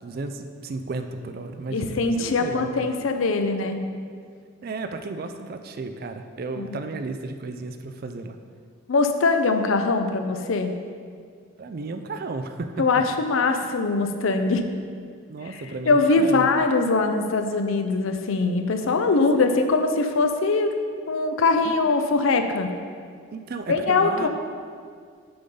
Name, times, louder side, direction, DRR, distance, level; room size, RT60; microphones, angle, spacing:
voice 1, 0.0-2.7 4.6-8.4 11.6-12.9 13.5-13.7 15.3-16.5 19.1-19.6 21.6-21.7 23.3-24.3, right 3 dB, 45° right, 7 dB, 0.3 m, -34 dB
voice 2, 1.7-3.8 6.6-6.8 8.9-10.7 12.8-14.6 15.5-20.7 21.1-22.7 23.7-24.3, left 3 dB, 70° left, 6 dB, 0.5 m, -22 dB
6.8 x 3.8 x 5.4 m, 2.1 s
head